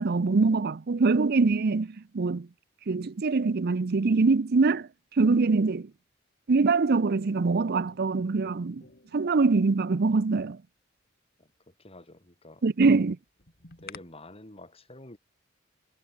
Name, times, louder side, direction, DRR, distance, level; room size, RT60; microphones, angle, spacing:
voice 1, 0.0-2.5 2.9-5.9 6.5-8.8 9.1-10.6 12.6-13.2, right 4 dB, 55° right, 0.6 m, -24 dB
sound 1, 7.6-10.0 12.8-14.0, left 5 dB, 50° left, 4.6 m, -51 dB
voice 2, 11.4-12.6 12.9-13.1 13.8-15.2, left 1 dB, 30° left, 5.6 m, -49 dB
head